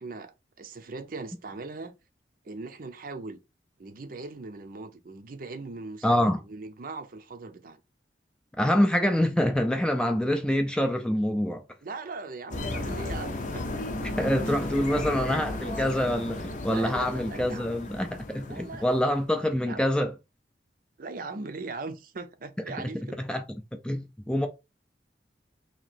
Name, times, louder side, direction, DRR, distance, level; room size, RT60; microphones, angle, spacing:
voice 1, 0.0-1.9 2.4-3.4 3.8-7.8 11.8-14.1 16.7-17.7 18.5-18.8 19.5-19.8 21.0-23.2, right 3 dB, 55° right, 0.6 m, -40 dB
voice 2, 6.0-6.4 8.6-11.6 14.2-20.1 22.7-22.9 23.2-23.4 23.8-24.5, left 1 dB, 5° left, 0.4 m, -26 dB
sound 1, 12.5-19.3, left 2 dB, 45° left, 0.6 m, -34 dB
2.9 x 2.8 x 4.2 m
head